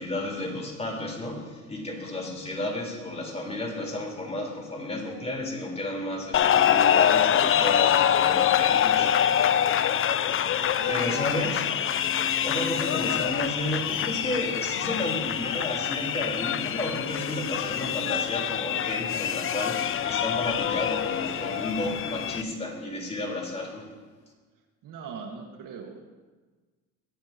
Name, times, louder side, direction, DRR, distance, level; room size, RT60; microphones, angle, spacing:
voice 1, 0.0-9.6 10.9-11.8 12.4-23.9, left 1 dB, 20° left, -2 dB, 4.3 m, -32 dB
sound 1, 6.3-22.4, left 9 dB, 35° left, 0.6 m, -25 dB
voice 2, 10.7-11.6 12.9-13.1 24.8-26.0, right 5 dB, 65° right, 2 dB, 1.9 m, -41 dB
23.0 x 7.7 x 3.0 m, 1.3 s
supercardioid pair, 80°, 35 cm